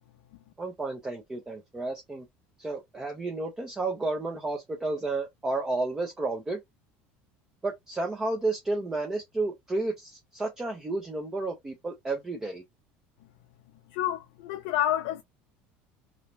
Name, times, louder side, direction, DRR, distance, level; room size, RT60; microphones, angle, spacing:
voice 1, 0.6-2.3 2.6-6.6 7.6-12.6, right 2 dB, 10° right, 0.5 m, -32 dB
voice 2, 13.9-15.2, left 12 dB, 80° left, 0.4 m, -29 dB
2.6 x 2.1 x 3.0 m
cardioid pair, 165°, 5 cm